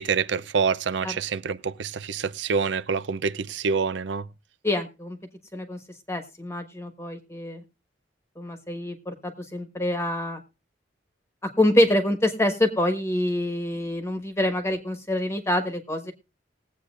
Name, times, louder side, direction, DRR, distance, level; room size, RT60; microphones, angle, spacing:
voice 1, 0.0-4.2, right 5 dB, 70° right, 0.5 m, -26 dB
voice 2, 4.6-5.2 5.5-5.8 6.1-7.6 8.4-10.4 11.6-16.1, left 1 dB, 15° left, 1.3 m, -26 dB
20.5 x 8.3 x 2.5 m
head